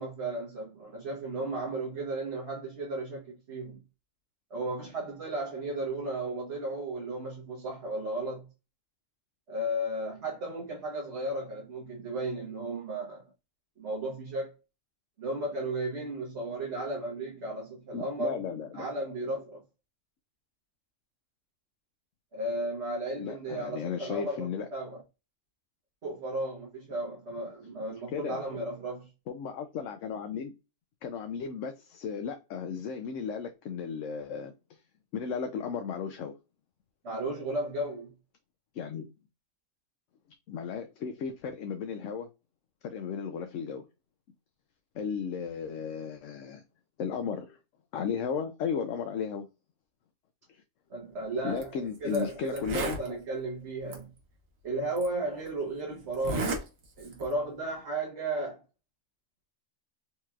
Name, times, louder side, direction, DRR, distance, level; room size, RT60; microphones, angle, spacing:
voice 1, 0.0-3.8 4.5-8.5 9.5-13.2 13.8-14.5 15.2-18.4 18.7-19.6 22.3-25.0 26.0-29.1 37.0-38.1 50.9-54.1 54.6-56.6 57.0-58.6, right 1 dB, 55° right, 1.4 m, -34 dB
voice 2, 17.9-18.9 23.2-24.7 28.1-28.4 29.3-30.5 31.0-34.5 35.1-36.3 38.7-39.1 40.5-42.3 42.8-43.9 44.9-46.6 47.0-47.6 47.9-49.5 50.5-50.6 51.4-53.0, left 6 dB, 75° left, 0.9 m, -35 dB
Zipper (clothing), 51.5-51.6 52.1-52.2 52.5-53.1 53.9-54.0 55.0-55.1 56.1-56.6 57.0-57.3, right 3 dB, 90° right, 1.4 m, -32 dB
4.4 x 2.9 x 2.3 m
omnidirectional pair, 1.3 m